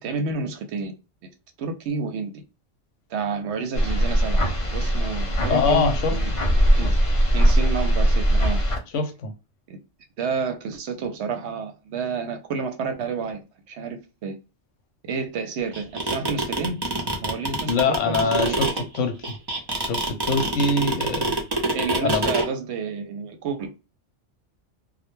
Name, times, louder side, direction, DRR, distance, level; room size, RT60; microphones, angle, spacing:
voice 1, 0.0-0.9 1.6-2.3 3.1-4.4 4.7-6.3 6.6-7.0 7.3-8.6 9.7-9.8 10.2-14.4 15.1-16.9 17.2-18.5 21.7-23.8, right 5 dB, 70° right, 0.8 m, -30 dB
sound 1, 3.7-8.8, equal, 55° left, 0.3 m, -20 dB
voice 2, 5.5-6.2 8.9-9.3 17.7-18.7 18.9-19.4 19.8-21.3 22.0-22.3, left 4 dB, 80° left, 0.9 m, -23 dB
sound 2, 15.7-22.5, right 2 dB, 35° right, 0.4 m, -25 dB
2.2 x 2.1 x 2.9 m
omnidirectional pair, 1.3 m